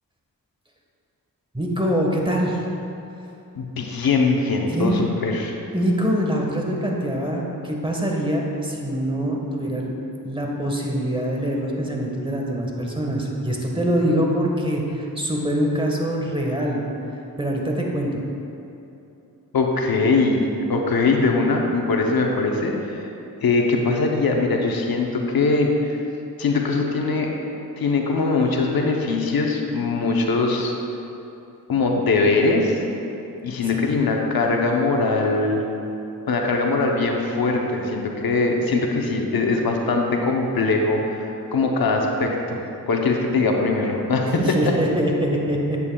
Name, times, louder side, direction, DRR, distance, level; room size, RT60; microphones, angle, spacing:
voice 1, 1.5-2.6 4.7-5.0 5.7-9.9 10.2-16.8 17.4-18.2 33.7-33.8 44.3-45.8, equal, 15° right, -1 dB, 1.4 m, -24 dB
voice 2, 3.5-5.6 19.5-23.1 23.4-26.0 26.4-27.3 27.8-30.7 31.7-32.8 33.4-35.6 36.3-44.7, left 3 dB, 80° left, 1 dB, 0.9 m, -21 dB
10.5 x 8.6 x 2.3 m, 2.9 s
cardioid pair, 55°, 35 cm